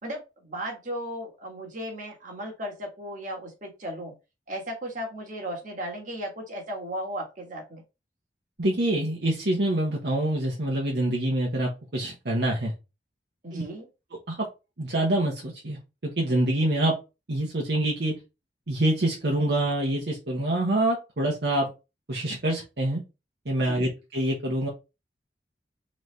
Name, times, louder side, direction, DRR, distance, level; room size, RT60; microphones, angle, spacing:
voice 1, 0.0-4.1 4.5-7.8 13.4-13.9 23.7-23.9, equal, 50° right, 0 dB, 1.5 m, -36 dB
voice 2, 8.6-12.7 13.5-13.6 14.3-14.5 14.8-16.9 17.3-18.1 18.7-21.7 22.1-23.0 23.4-24.7, right 1 dB, 65° right, -2 dB, 1.0 m, -26 dB
4.0 x 3.2 x 3.2 m, 0.27 s
head